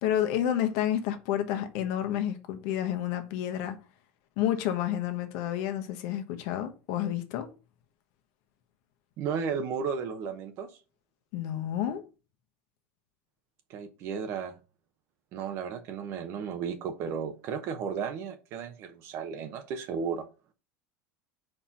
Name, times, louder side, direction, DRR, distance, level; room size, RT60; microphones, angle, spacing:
voice 1, 0.0-3.8 4.4-7.5 11.3-12.0, left 11 dB, 65° left, 1.1 m, -30 dB
voice 2, 9.2-10.7 13.7-14.5 15.3-20.3, right 6 dB, 50° right, 0.8 m, -34 dB
4.5 x 4.4 x 5.6 m
supercardioid pair, 145°, 6 cm